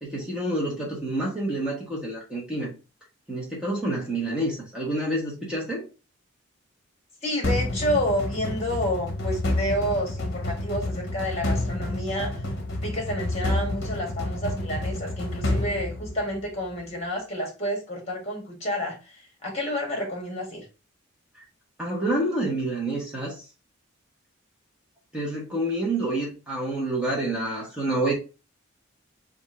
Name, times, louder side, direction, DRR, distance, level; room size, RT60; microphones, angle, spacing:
voice 1, 0.0-2.7 3.3-5.9 21.8-23.4 25.1-28.1, right 1 dB, 5° right, 1.0 m, -28 dB
voice 2, 7.2-12.4 12.8-19.1 19.4-20.6, equal, 30° left, 1.5 m, -29 dB
sound 1, 7.4-16.6, left 1 dB, 50° left, 0.9 m, -29 dB
3.6 x 2.5 x 4.2 m
head